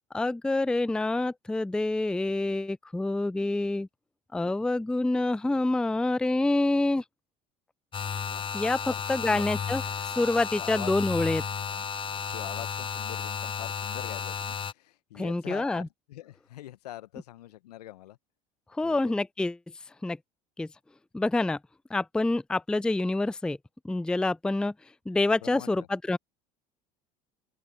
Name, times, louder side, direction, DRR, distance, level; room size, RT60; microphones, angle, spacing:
voice 1, 0.1-3.9 4.3-7.0 8.5-11.4 15.1-15.9 18.7-19.6 20.0-20.2 20.6-20.7 21.1-21.6 21.9-23.6 23.8-24.7 25.1-26.2, left 2 dB, 5° left, 0.4 m, -27 dB
sound 1, 7.9-14.7, left 7 dB, 25° left, 0.9 m, -33 dB
voice 2, 8.8-9.4 10.6-11.0 11.6-18.2 18.8-19.0 25.4-25.9, left 14 dB, 75° left, 1.3 m, -44 dB
open air
hypercardioid pair, 70°, 20 cm